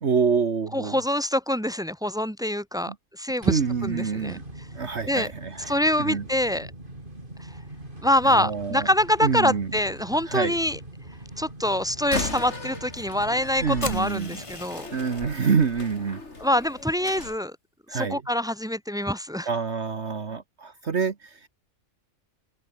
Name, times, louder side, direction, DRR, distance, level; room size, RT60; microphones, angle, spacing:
voice 1, 0.0-1.0 2.9-3.0 3.5-4.4 4.7-6.3 8.2-8.9 9.2-9.7 10.3-10.6 13.6-14.4 14.9-16.2 17.9-18.2 19.5-21.5, right 5 dB, 60° right, 1.8 m, -26 dB
voice 2, 0.7-4.4 5.1-5.3 5.7-6.7 8.0-10.8 11.4-14.9 16.4-17.6 17.9-19.5, left 1 dB, 5° right, 1.0 m, -25 dB
sound 1, 3.4-14.0, right 1 dB, 40° right, 6.0 m, -42 dB
Slam, 12.0-17.4, left 3 dB, 60° left, 3.9 m, -37 dB
sound 2, 13.8-16.0, left 3 dB, 25° left, 1.6 m, -40 dB
open air
omnidirectional pair, 1.3 m